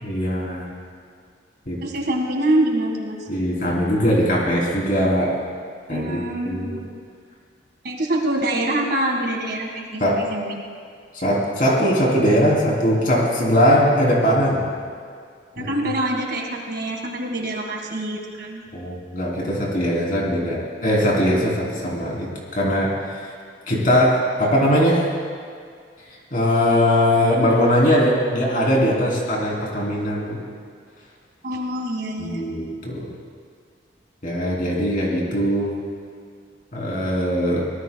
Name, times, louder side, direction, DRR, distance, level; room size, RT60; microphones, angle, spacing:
voice 1, 0.0-0.7 1.7-1.8 3.3-5.4 5.9-6.2 6.5-6.8 10.0-10.2 11.1-14.6 15.6-15.7 18.7-23.3 23.7-25.0 26.3-30.4 32.2-33.1 34.2-35.7 36.7-37.6, equal, 45° left, -3 dB, 3.5 m, -20 dB
voice 2, 1.8-3.3 5.9-6.8 7.8-10.6 15.6-18.6 31.4-32.4, right 1 dB, 55° right, 1 dB, 1.9 m, -25 dB
24.5 x 18.0 x 2.3 m, 2.1 s
head